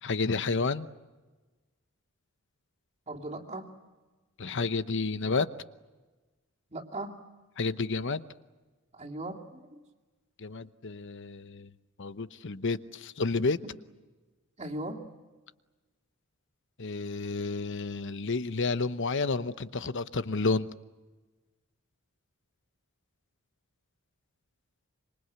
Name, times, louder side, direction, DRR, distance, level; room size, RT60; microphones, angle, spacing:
voice 1, 0.0-0.9 4.4-5.5 7.6-8.2 10.4-11.7 12.0-13.6 16.8-20.7, left 3 dB, 60° left, 13 dB, 0.9 m, -30 dB
voice 2, 3.1-3.7 6.7-7.2 8.9-9.8 13.6-13.7 14.6-15.0, right 2 dB, 30° right, 1 dB, 2.7 m, -38 dB
26.0 x 24.0 x 8.1 m, 1.2 s
head